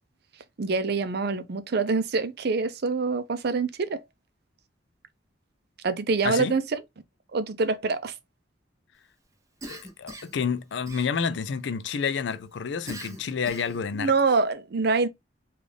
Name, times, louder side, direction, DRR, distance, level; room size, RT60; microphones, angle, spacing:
voice 1, 0.6-4.0 5.8-6.6 7.3-8.1 14.0-15.1, right 4 dB, 60° right, 0.5 m, -25 dB
voice 2, 6.2-6.5 9.7-14.1, left 6 dB, 75° left, 0.4 m, -29 dB
Cough, 9.6-10.4 10.9-11.5 12.9-13.9, right 1 dB, 20° right, 0.9 m, -41 dB
3.8 x 2.4 x 3.3 m
head